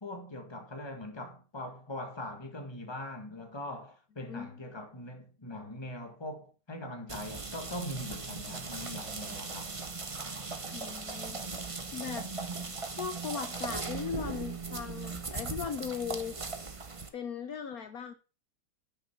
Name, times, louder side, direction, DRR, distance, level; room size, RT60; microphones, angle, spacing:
voice 1, 0.0-9.7, left 1 dB, 15° left, 1.5 m, -41 dB
sound 1, 7.1-17.1, right 4 dB, 25° right, 0.8 m, -38 dB
voice 2, 10.7-11.4 11.9-12.3 13.0-16.4 17.1-18.1, left 7 dB, 65° left, 1.3 m, -38 dB
9.3 x 6.4 x 5.8 m
omnidirectional pair, 1.8 m